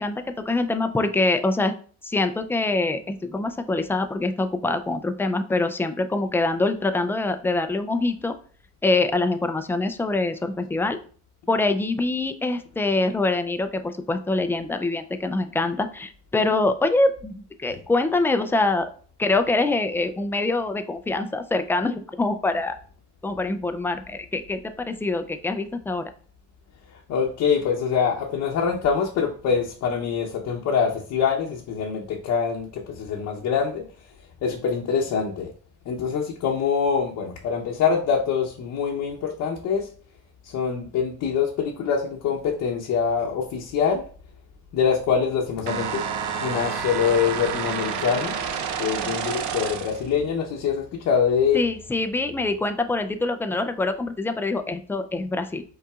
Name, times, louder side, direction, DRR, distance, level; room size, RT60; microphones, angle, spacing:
voice 1, 0.0-1.8 2.0-8.4 8.8-11.0 11.5-18.9 19.2-22.8 23.2-26.1 49.0-49.2 51.5-55.6, left 2 dB, 10° left, 8 dB, 0.3 m, -24 dB
voice 2, 27.1-33.8 34.4-35.5 35.9-39.9 40.4-44.0 44.7-48.4 48.8-51.6, left 6 dB, 65° left, -1 dB, 0.8 m, -24 dB
sound 1, 45.7-50.1, right 7 dB, 70° right, 0.7 m, -29 dB
5.6 x 3.9 x 2.4 m, 0.42 s
cardioid pair, 125°, 31 cm